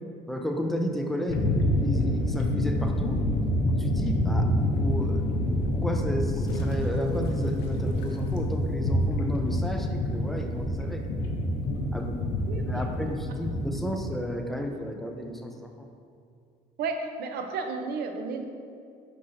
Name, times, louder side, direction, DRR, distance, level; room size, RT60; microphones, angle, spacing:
voice 1, 0.3-1.5 1.8-3.2 3.7-5.3 5.7-11.0 11.9-12.3 12.7-15.9, equal, ahead, 3 dB, 0.5 m, -32 dB
sound 1, 1.3-14.0, left 1 dB, 85° left, 0.7 m, -27 dB
voice 2, 12.5-12.8 16.8-18.4, right 4 dB, 70° right, 5 dB, 0.7 m, -32 dB
6.7 x 5.4 x 2.7 m, 2.4 s
cardioid pair, 110°, 17 cm